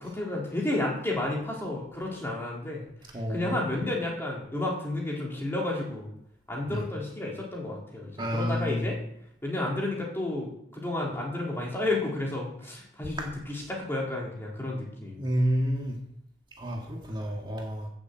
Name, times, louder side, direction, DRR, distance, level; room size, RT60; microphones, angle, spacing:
voice 1, 0.0-2.8 3.3-6.1 6.5-9.0 9.4-15.2, left 2 dB, 15° left, -2 dB, 3.1 m, -31 dB
voice 2, 3.1-3.6 6.7-6.8 8.2-8.9 13.2-13.3 15.2-16.0 16.6-17.9, equal, 25° right, 0 dB, 1.8 m, -29 dB
9.6 x 7.4 x 7.7 m, 0.74 s
head